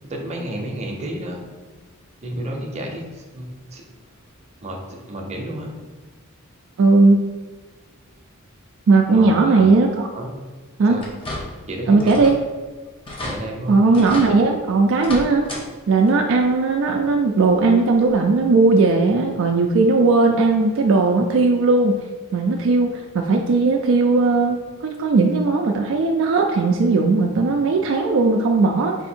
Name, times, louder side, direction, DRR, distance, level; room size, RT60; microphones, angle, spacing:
voice 1, 0.0-1.4 2.2-3.8 4.6-5.7 9.1-9.7 10.1-10.3 10.9-11.1 11.7-12.2 13.2-13.8, right 1 dB, 30° right, 0 dB, 0.7 m, -31 dB
voice 2, 6.8-7.2 8.9-10.1 10.8-11.0 11.9-12.3 13.7-15.4 15.9-22.0 22.3-29.0, right 3 dB, 65° right, 2 dB, 0.4 m, -17 dB
sound 1, 11.0-11.7 12.0-12.4 12.7-12.8 13.0-13.4 13.9-14.3 14.9-15.6 16.0-16.1 17.5-17.6 18.1-18.2, left 1 dB, 25° left, 0.9 m, -32 dB
4.2 x 2.6 x 4.3 m, 1.4 s
head